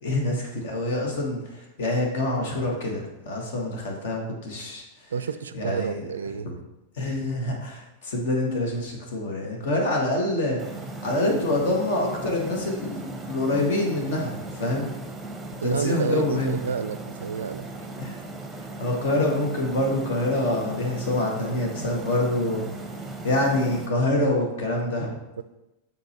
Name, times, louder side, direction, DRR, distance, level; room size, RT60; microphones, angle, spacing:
voice 1, 0.0-4.8 5.5-6.0 7.0-10.6 11.0-14.9 15.6-16.6 18.0-18.2 18.8-22.6 23.2-25.2, left 1 dB, 55° left, 0 dB, 1.5 m, -26 dB
voice 2, 5.1-6.5 15.6-17.7 25.4-25.5, right 6 dB, 70° right, 13 dB, 0.3 m, -30 dB
sound 1, 10.6-23.9, right 2 dB, 10° right, 0.9 m, -38 dB
6.8 x 3.8 x 4.4 m, 0.97 s
figure-of-eight pair, 90°, 0 cm